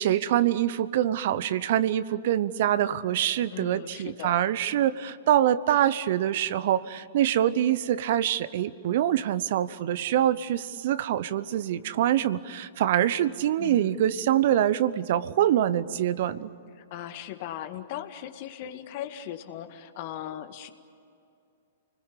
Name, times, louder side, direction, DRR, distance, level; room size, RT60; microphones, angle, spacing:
voice 1, 0.0-16.5, right 11 dB, 55° right, 16 dB, 0.9 m, -25 dB
voice 2, 3.5-4.4 13.6-14.0 16.8-20.7, left 11 dB, 50° left, 8 dB, 1.9 m, -38 dB
30.0 x 20.5 x 8.4 m, 2.5 s
hypercardioid pair, 110°, 0 cm